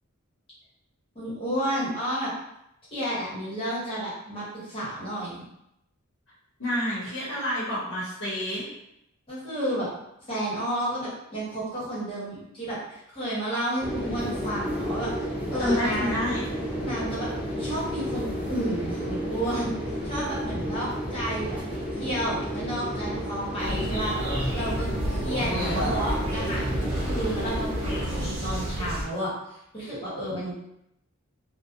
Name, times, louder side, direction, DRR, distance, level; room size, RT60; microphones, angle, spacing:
voice 1, 1.1-2.3 2.9-5.4 9.3-9.9 10.3-15.1 15.5-16.2 16.8-17.3 17.6-24.1 24.5-29.3 29.7-30.6, right 1 dB, 25° left, -9 dB, 1.1 m, -31 dB
voice 2, 6.6-8.7 15.6-16.4 25.4-25.9, left 1 dB, 70° left, -8 dB, 0.9 m, -29 dB
sound 1, 13.8-28.1, equal, 5° right, 0.4 m, -32 dB
sound 2, 23.6-29.0, right 1 dB, 75° right, 0.9 m, -30 dB
2.6 x 2.1 x 2.5 m, 0.80 s
head